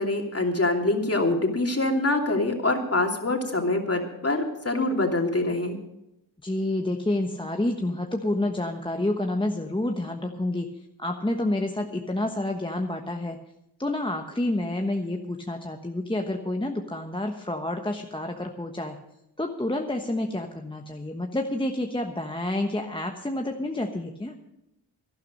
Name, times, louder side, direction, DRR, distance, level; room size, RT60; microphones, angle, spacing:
voice 1, 0.0-5.8, left 2 dB, 35° left, 2 dB, 2.9 m, -25 dB
voice 2, 6.4-10.7 11.0-13.4 13.8-19.0 19.4-24.4, left 1 dB, 10° left, 3 dB, 1.2 m, -29 dB
12.0 x 11.5 x 6.5 m, 0.87 s
cardioid pair, 45°, 41 cm